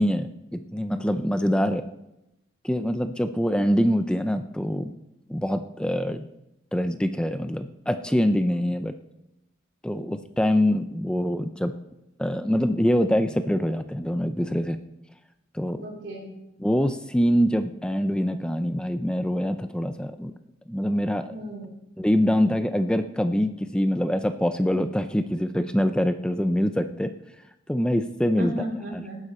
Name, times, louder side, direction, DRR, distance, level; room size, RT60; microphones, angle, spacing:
voice 1, 0.0-1.8 2.6-4.9 5.3-6.3 6.7-8.9 9.8-11.7 12.2-14.8 15.5-15.8 16.6-20.3 20.7-21.3 22.0-27.1 27.7-28.5 28.9-29.0, equal, 5° left, 8 dB, 0.5 m, -24 dB
voice 2, 15.8-16.3 21.3-21.7 28.4-29.2, equal, 70° right, -2 dB, 3.9 m, -34 dB
18.5 x 9.8 x 4.3 m, 0.87 s
head